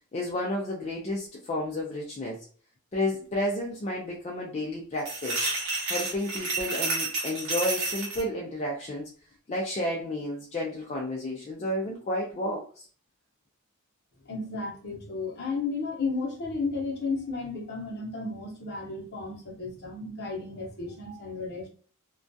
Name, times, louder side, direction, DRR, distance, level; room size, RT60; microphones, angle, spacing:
voice 1, 0.1-2.4 2.9-5.5 5.9-9.1 9.5-12.9, left 1 dB, 30° left, -2 dB, 0.3 m, -31 dB
sound 1, 5.0-8.2, right 3 dB, 75° right, 0.9 m, -30 dB
voice 2, 14.3-21.7, left 3 dB, 50° left, -1 dB, 0.7 m, -33 dB
2.2 x 2.2 x 2.5 m, 0.42 s
head